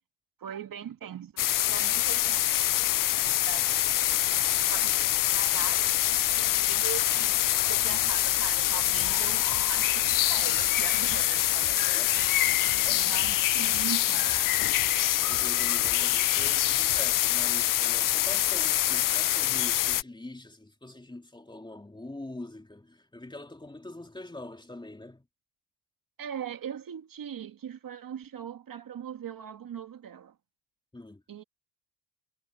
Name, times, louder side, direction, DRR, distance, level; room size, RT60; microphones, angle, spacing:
voice 1, 0.4-3.7 4.7-5.9 6.3-11.8 12.6-14.5 26.2-30.3 31.3-31.4, right 9 dB, 50° right, 2.2 m, -41 dB
sound 1, 1.4-20.0, left 14 dB, 50° left, 0.6 m, -25 dB
sound 2, 9.0-17.3, right 12 dB, 70° right, 5.3 m, -48 dB
voice 2, 11.6-12.2 12.8-13.1 15.2-25.3 30.9-31.2, left 2 dB, 10° left, 3.1 m, -44 dB
cardioid pair, 90°, 43 cm